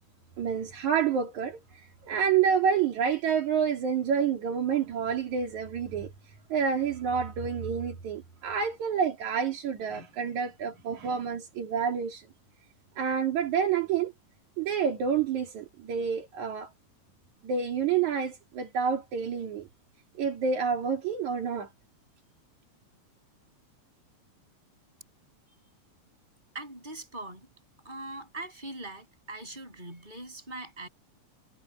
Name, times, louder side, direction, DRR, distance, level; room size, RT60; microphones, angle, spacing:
voice 1, 0.4-1.6 2.0-6.1 6.5-12.3 13.0-14.1 14.6-16.7 17.4-19.7 20.2-21.7, right 7 dB, 80° right, 4.0 m, -28 dB
voice 2, 26.5-27.5 27.8-30.9, right 2 dB, 15° right, 6.8 m, -41 dB
omnidirectional pair, 3.3 m